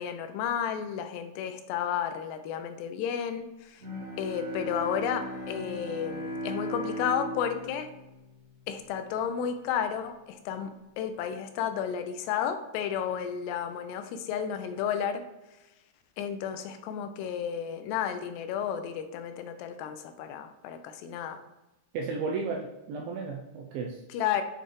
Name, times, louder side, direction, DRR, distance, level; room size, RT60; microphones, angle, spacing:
voice 1, 0.0-3.8 4.2-7.9 8.7-15.2 16.2-21.4 24.1-24.4, left 8 dB, 85° left, 8 dB, 2.7 m, -32 dB
Bowed string instrument, 3.8-9.1, equal, 30° right, 2.0 m, -38 dB
voice 2, 21.9-24.0, right 4 dB, 80° right, 0 dB, 2.1 m, -34 dB
8.7 x 3.9 x 3.2 m, 0.99 s
omnidirectional pair, 4.8 m